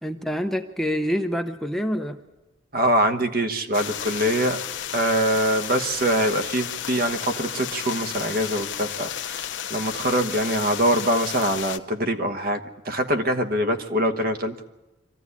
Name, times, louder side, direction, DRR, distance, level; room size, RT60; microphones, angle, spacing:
voice 1, 0.0-2.2, equal, ahead, 5 dB, 0.7 m, -26 dB
voice 2, 2.7-4.6 4.9-9.4 9.7-14.6, right 1 dB, 45° right, 8 dB, 1.2 m, -24 dB
sound 1, 3.7-11.8, left 9 dB, 60° left, 0.9 m, -33 dB
24.5 x 15.0 x 9.8 m, 1.1 s
head